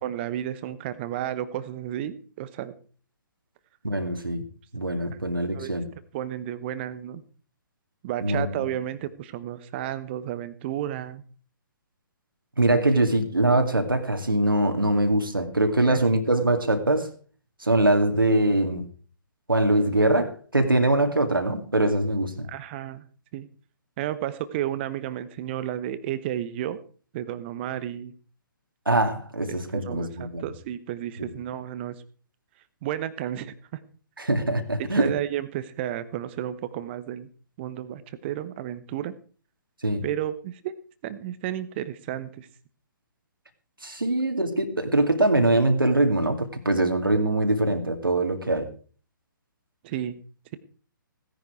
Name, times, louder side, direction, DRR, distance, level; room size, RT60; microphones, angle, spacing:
voice 1, 0.0-2.7 5.5-5.7 6.1-7.2 8.0-11.2 15.8-16.0 22.5-23.0 23.3-23.5 24.0-26.8 27.1-28.1 29.5-32.0 32.8-33.5 34.9-37.3 37.6-39.1 40.0-40.7 41.0-42.5 49.8-50.1, right 12 dB, 30° right, 15 dB, 1.1 m, -32 dB
voice 2, 3.8-4.4 4.7-5.9 8.2-8.7 12.6-17.1 17.6-18.8 19.5-22.5 28.9-30.5 34.2-35.1 39.8-40.0 43.8-48.7, right 2 dB, 80° right, 5 dB, 2.3 m, -23 dB
17.0 x 10.5 x 4.7 m, 0.40 s
figure-of-eight pair, 130°, 11 cm